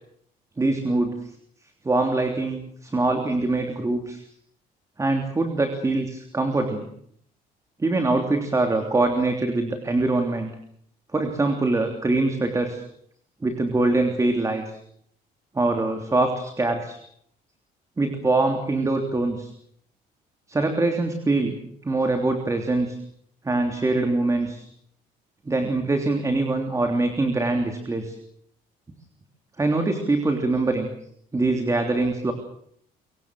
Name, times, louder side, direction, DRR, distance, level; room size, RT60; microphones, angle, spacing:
voice 1, 0.6-1.3 1.8-4.2 5.0-6.9 7.8-10.5 11.1-12.8 13.4-14.7 15.5-17.0 18.0-19.5 20.5-21.5 21.8-23.0 23.4-24.6 25.4-28.2 29.6-30.9 31.3-32.3, right 2 dB, 20° right, 5 dB, 3.2 m, -23 dB
25.5 x 24.0 x 6.5 m, 0.68 s
cardioid pair, 110°, 17 cm